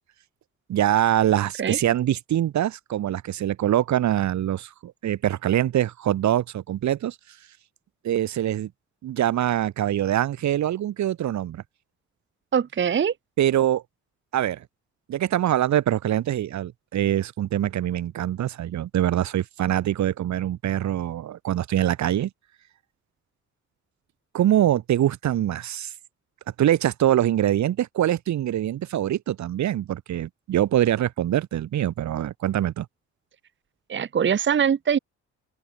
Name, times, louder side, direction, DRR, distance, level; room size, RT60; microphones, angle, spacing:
voice 1, 0.7-7.1 8.0-8.7 9.0-11.6 13.4-13.8 14.3-14.6 15.1-22.3 24.3-25.9 26.6-32.8, right 12 dB, 65° right, 1.6 m, -24 dB
voice 2, 12.5-13.1 33.9-35.0, right 8 dB, 40° right, 1.1 m, -22 dB
open air
cardioid pair, 90°, 30 cm